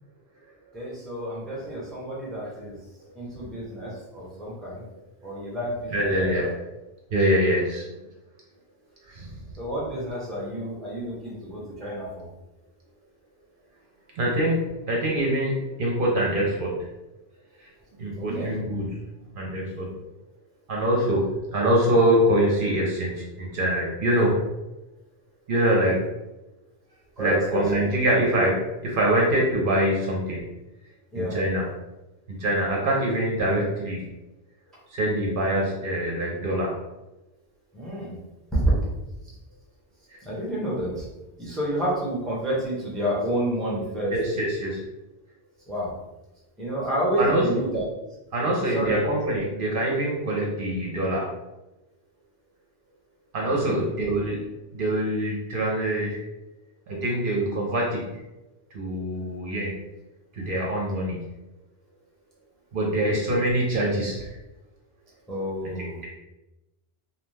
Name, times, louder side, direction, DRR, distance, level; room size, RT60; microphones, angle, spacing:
voice 1, 0.7-2.8 3.1-4.8 5.2-6.5 9.6-12.3 18.2-18.5 27.2-27.7 31.1-31.4 37.7-38.2 38.5-38.7 40.2-41.1 41.4-44.2 45.7-46.0 46.6-47.8 48.7-49.0 53.4-53.8 56.9-57.0 63.0-63.3 65.3-66.0, right 1 dB, ahead, -5 dB, 0.6 m, -29 dB
voice 2, 5.9-6.5 7.1-7.8 9.1-9.3 14.2-15.5 15.8-16.8 17.6-17.7 18.0-18.9 19.3-19.9 20.7-21.3 21.5-24.4 25.5-26.0 27.2-30.4 31.1-31.6 32.4-34.0 34.9-36.7 40.1-40.2 44.1-44.8 47.2-47.4 48.3-51.3 53.3-54.4 54.7-56.2 56.9-58.0 58.7-59.8 60.3-61.2 62.7-64.3, right 1 dB, 60° right, -2 dB, 0.7 m, -24 dB
2.6 x 2.1 x 3.2 m, 0.99 s
omnidirectional pair, 1.1 m